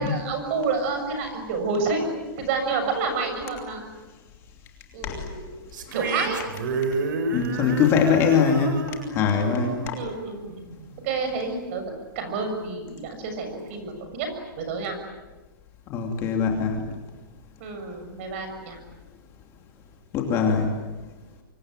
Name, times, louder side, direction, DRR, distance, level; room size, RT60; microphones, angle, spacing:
voice 1, 0.0-3.8 4.9-5.5 5.9-6.4 9.9-10.4 11.0-11.8 12.2-14.3 14.6-15.0 17.6-18.8, right 4 dB, 35° right, 6 dB, 6.8 m, -29 dB
sound 1, 5.7-11.1, right 2 dB, 60° right, 4.4 m, -30 dB
voice 2, 7.3-8.8 9.1-9.8 15.9-16.8 20.1-20.7, left 6 dB, 20° left, 2 dB, 2.9 m, -22 dB
25.5 x 24.0 x 9.3 m, 1.2 s
hypercardioid pair, 170°, 12 cm